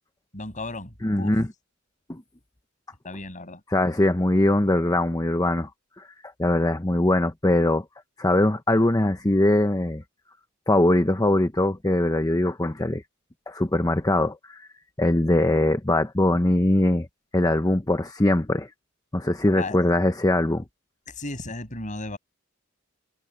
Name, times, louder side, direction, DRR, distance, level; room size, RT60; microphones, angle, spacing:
voice 1, 0.3-1.3 3.0-3.6 19.5-19.8 21.1-22.2, left 2 dB, 35° left, 7.1 m, -35 dB
voice 2, 1.0-1.5 2.1-2.2 3.7-5.7 6.0-6.1 6.4-7.8 8.2-10.0 10.7-13.0 13.5-14.7 15.0-17.1 17.3-18.7 19.1-20.6, left 1 dB, 15° left, 0.9 m, -21 dB
head